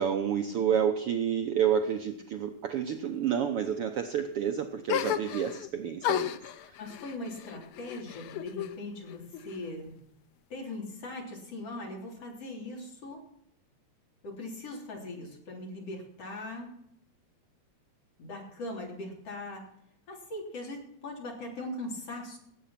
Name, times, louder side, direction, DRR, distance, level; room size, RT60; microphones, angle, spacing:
voice 1, 0.0-6.3 6.7-6.8, right 8 dB, 70° right, 6 dB, 1.4 m, -29 dB
sound 1, 4.9-5.7 6.0-8.8 9.1-9.9, left 12 dB, 90° left, 1.2 m, -34 dB
voice 2, 6.8-10.0 10.5-13.2 14.2-16.7 18.2-19.7 20.1-22.4, left 2 dB, 55° left, 0 dB, 4.4 m, -40 dB
17.0 x 8.3 x 5.8 m, 0.73 s
omnidirectional pair, 3.4 m